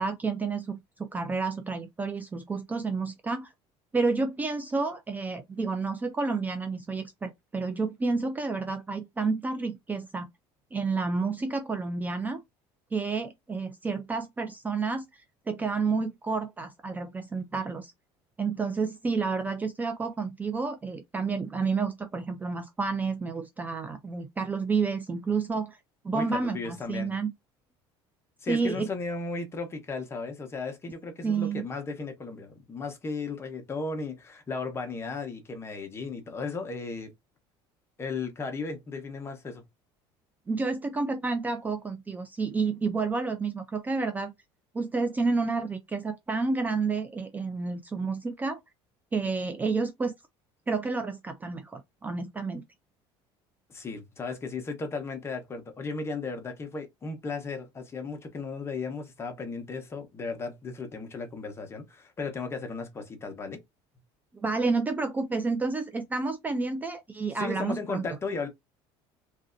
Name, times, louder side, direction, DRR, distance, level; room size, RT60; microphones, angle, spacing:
voice 1, 0.0-3.5 3.9-10.3 10.7-12.4 12.9-15.2 15.5-17.9 18.4-25.8 26.0-27.3 28.5-28.9 31.2-31.6 40.5-44.3 44.7-48.6 49.1-50.1 50.7-52.6 64.3-68.0, right 4 dB, 15° right, 0.3 m, -30 dB
voice 2, 26.1-27.1 28.4-37.1 38.0-39.6 53.7-63.6 67.3-68.5, left 4 dB, 25° left, 0.9 m, -35 dB
3.2 x 2.6 x 2.5 m
cardioid pair, 130°, 11 cm